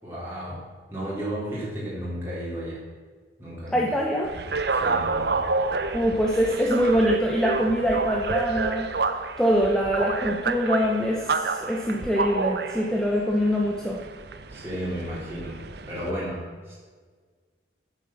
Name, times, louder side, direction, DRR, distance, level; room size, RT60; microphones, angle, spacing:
voice 1, 0.0-0.6 0.9-2.8 3.4-3.9 4.7-5.4 14.5-15.6 15.8-16.7, equal, 15° right, -8 dB, 3.5 m, -33 dB
voice 2, 3.7-4.3 5.9-8.9 9.4-14.0, equal, 5° left, -2 dB, 0.9 m, -24 dB
sound 1, 4.2-16.1, right 4 dB, 60° right, 0.7 m, -29 dB
9.2 x 7.4 x 7.3 m, 1.5 s
head